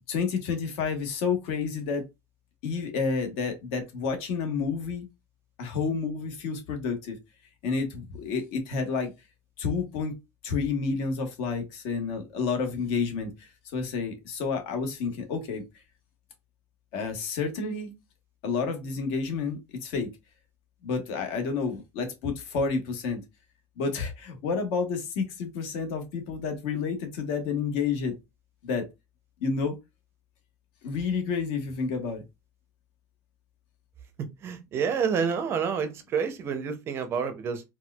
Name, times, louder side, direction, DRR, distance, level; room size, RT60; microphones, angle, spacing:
voice 1, 0.1-2.0 2.6-5.0 5.6-7.2 7.6-9.1 9.6-10.2 10.4-15.6 16.9-17.9 18.4-20.1 20.8-23.2 23.8-28.2 28.6-28.9 29.4-29.7 30.8-32.2, left 5 dB, 70° left, 1.1 m, -30 dB
voice 2, 34.4-37.6, right 6 dB, 30° right, 0.5 m, -28 dB
4.2 x 2.2 x 2.2 m
cardioid pair, 175°, 8 cm